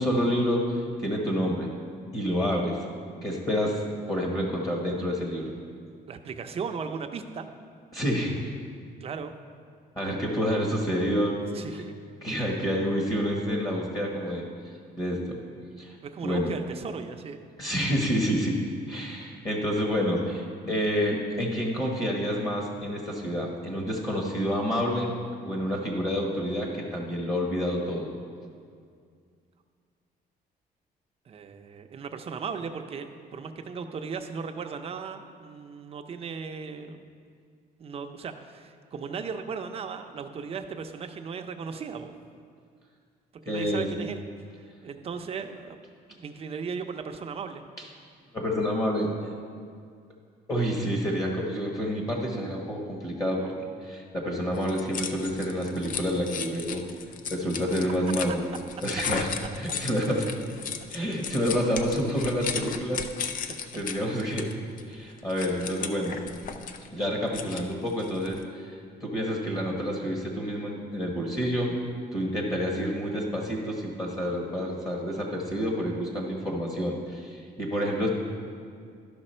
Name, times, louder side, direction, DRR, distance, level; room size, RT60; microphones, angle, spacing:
voice 1, 0.0-1.7 2.1-2.8 3.2-3.8 4.1-5.5 7.9-8.4 9.9-11.4 11.7-11.8 12.2-14.4 15.0-15.4 15.8-15.9 16.2-16.5 17.6-18.6 18.9-25.1 25.4-28.1 43.5-43.9 47.8-47.9 48.3-49.1 50.5-53.5 53.8-56.8 57.3-58.4 58.8-59.3 59.5-60.3 60.9-63.3 63.7-64.5 64.9-66.2 66.9-71.7 72.1-78.1, equal, 20° left, -1 dB, 1.2 m, -28 dB
voice 2, 6.1-7.5 9.0-9.3 11.5-11.9 16.0-17.4 31.3-37.1 37.8-42.1 43.5-44.2 44.8-45.8 46.1-47.6, right 5 dB, 35° right, 5 dB, 0.6 m, -36 dB
sound 1, 54.5-68.4, left 6 dB, 55° left, 0.5 m, -36 dB
12.0 x 5.8 x 4.3 m, 2.2 s
cardioid pair, 145°, 16 cm